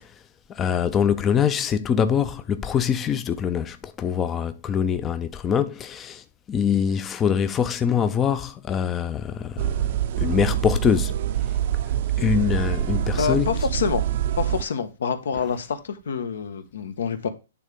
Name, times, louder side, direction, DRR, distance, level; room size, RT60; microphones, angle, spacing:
voice 1, 0.6-6.2 6.5-9.7 10.2-11.1 12.2-13.5, left 8 dB, 15° left, 0.4 m, -23 dB
sound 1, 9.6-14.6, right 11 dB, 50° right, 0.5 m, -25 dB
voice 2, 13.2-14.0 14.4-17.3, left 6 dB, 80° left, 1.3 m, -27 dB
9.1 x 3.6 x 5.1 m
hypercardioid pair, 160°, 0 cm